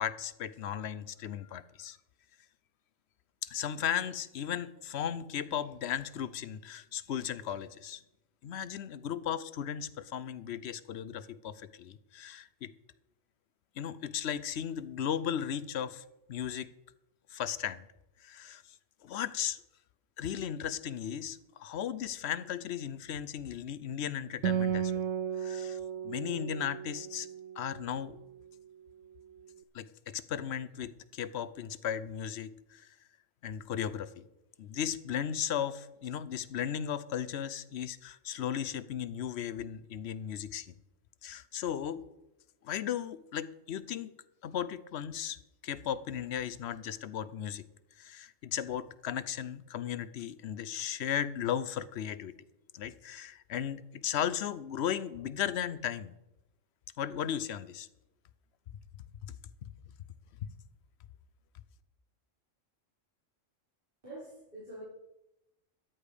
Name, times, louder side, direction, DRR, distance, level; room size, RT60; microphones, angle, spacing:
voice 1, 0.0-2.0 3.4-8.0 8.4-12.7 13.8-16.0 16.3-16.7 17.3-17.8 18.2-18.6 19.0-19.6 20.2-25.0 25.4-27.3 27.6-28.2 29.7-32.9 33.4-34.2 34.6-40.7 41.2-42.0 42.6-44.1 44.4-45.4 45.6-47.7 48.0-52.4 52.7-56.1 57.0-57.9, left 9 dB, 65° left, 15 dB, 0.9 m, -36 dB
Acoustic guitar, 24.4-28.2, right 8 dB, 85° right, 1.0 m, -34 dB
voice 2, 64.0-64.8, right 1 dB, 45° right, -11 dB, 5.2 m, -46 dB
13.5 x 10.0 x 5.0 m, 0.92 s
omnidirectional pair, 1.3 m